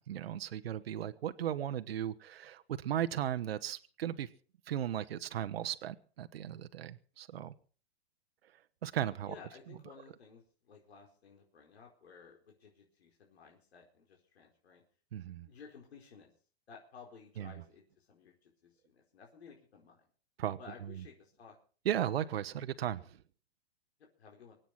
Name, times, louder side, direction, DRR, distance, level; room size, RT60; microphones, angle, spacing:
voice 1, 0.0-4.3 4.7-7.5 8.8-9.3 15.1-15.5 17.4-17.5 20.4-21.0 21.8-23.2, right 11 dB, 70° right, 11 dB, 1.1 m, -36 dB
voice 2, 9.3-14.8 15.5-16.3 16.7-20.0 20.6-21.5 24.2-24.6, left 5 dB, 80° left, 0 dB, 4.7 m, -55 dB
23.5 x 9.2 x 5.9 m, 0.42 s
hypercardioid pair, 175°, 31 cm